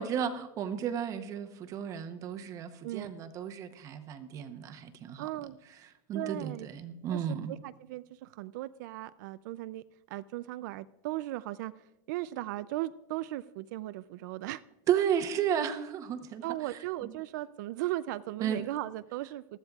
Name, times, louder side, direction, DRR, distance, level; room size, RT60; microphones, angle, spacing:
voice 1, 0.0-5.3 6.1-7.5 14.9-16.4 17.0-17.1 18.4-18.7, right 8 dB, 30° right, 8 dB, 0.8 m, -33 dB
voice 2, 5.2-5.6 6.1-6.7 7.1-11.7 12.1-14.6 16.4-19.6, right 16 dB, 65° right, 14 dB, 0.4 m, -37 dB
20.5 x 13.5 x 2.4 m, 0.97 s
supercardioid pair, 155°, 11 cm